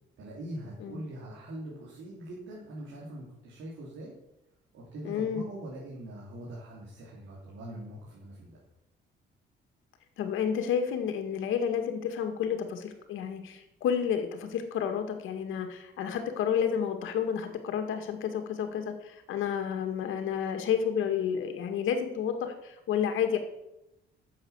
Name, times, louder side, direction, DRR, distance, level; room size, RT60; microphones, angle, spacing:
voice 1, 0.2-4.1 4.7-8.6, right 1 dB, 80° right, -5 dB, 3.4 m, -42 dB
voice 2, 5.1-5.5 10.2-23.4, left 8 dB, 85° left, 5 dB, 2.0 m, -30 dB
10.0 x 7.6 x 7.2 m, 0.88 s
cardioid pair, 90°, 20 cm